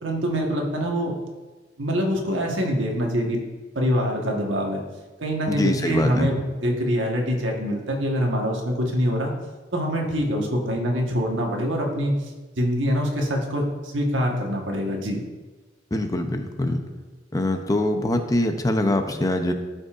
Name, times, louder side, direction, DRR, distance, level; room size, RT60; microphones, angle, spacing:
voice 1, 0.0-1.1 1.8-3.4 3.7-4.8 5.2-9.3 9.7-12.1 12.6-15.2, equal, 90° right, 0 dB, 1.3 m, -24 dB
voice 2, 5.5-6.3 15.9-16.8 17.3-19.5, left 1 dB, 20° left, 6 dB, 0.6 m, -23 dB
13.5 x 5.3 x 2.5 m, 1.3 s
head